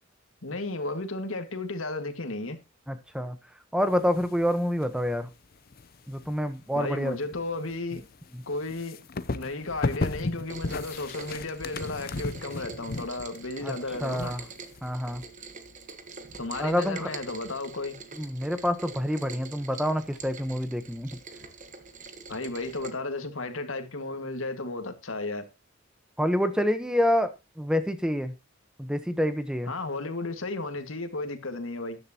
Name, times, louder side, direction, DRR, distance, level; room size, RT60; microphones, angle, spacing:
voice 1, 0.4-2.6 6.7-8.0 8.5-9.0 9.3-14.3 16.4-18.0 22.3-25.5 29.7-32.0, left 2 dB, 85° left, 1.9 m, -34 dB
voice 2, 2.9-3.4 3.7-5.3 6.1-7.2 8.3-8.4 13.6-13.7 14.0-14.4 14.8-15.2 16.6-17.1 18.2-21.1 26.2-28.3 28.8-29.7, equal, 5° right, 1.0 m, -27 dB
sound 1, 3.8-5.2 5.5-15.2, left 3 dB, 50° left, 0.7 m, -35 dB
Rain, 10.5-22.9, right 4 dB, 40° right, 1.3 m, -45 dB
13.0 x 10.5 x 2.9 m
head